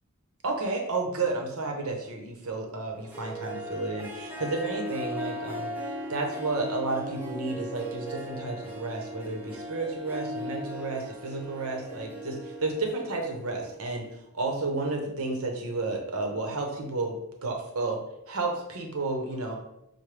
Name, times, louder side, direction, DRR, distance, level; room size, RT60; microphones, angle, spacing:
voice 1, 0.4-5.7 6.1-14.0 14.3-17.2 17.4-18.0 18.3-19.6, right 3 dB, 70° right, 2 dB, 0.9 m, -31 dB
Harp, 2.9-14.1, equal, 10° right, 0.6 m, -38 dB
5.9 x 2.2 x 3.3 m, 0.81 s
head